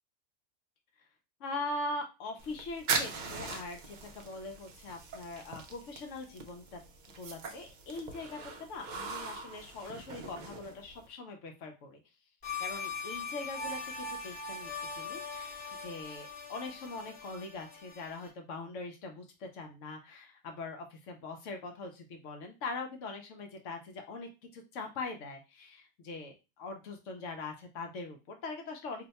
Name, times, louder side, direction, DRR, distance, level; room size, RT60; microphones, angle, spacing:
voice 1, 1.4-6.8 7.1-12.0 12.6-29.1, left 3 dB, 75° left, 4 dB, 0.9 m, -42 dB
sound 1, 2.4-11.1, right 4 dB, 60° right, 0.5 m, -40 dB
sound 2, 12.4-18.3, left 4 dB, 55° left, 1.1 m, -41 dB
2.6 x 2.2 x 4.0 m, 0.28 s
omnidirectional pair, 1.4 m